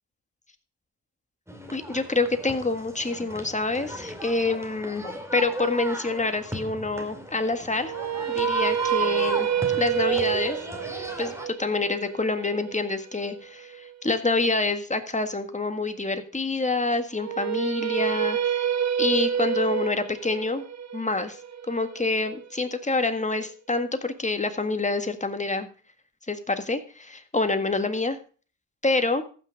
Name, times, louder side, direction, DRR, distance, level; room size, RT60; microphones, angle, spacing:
sound 1, 1.5-11.5, right 2 dB, 5° right, 2.6 m, -35 dB
voice 1, 1.7-7.9 8.3-9.5 9.8-10.6 10.9-18.7 19.0-20.6 20.9-21.4 21.7-25.7 26.3-28.2 28.8-29.2, left 3 dB, 20° left, 8 dB, 1.7 m, -27 dB
sound 2, 7.8-13.9 17.1-23.2, right 9 dB, 45° right, 0.8 m, -28 dB
15.0 x 6.1 x 5.2 m, 0.40 s
cardioid pair, 65°, 39 cm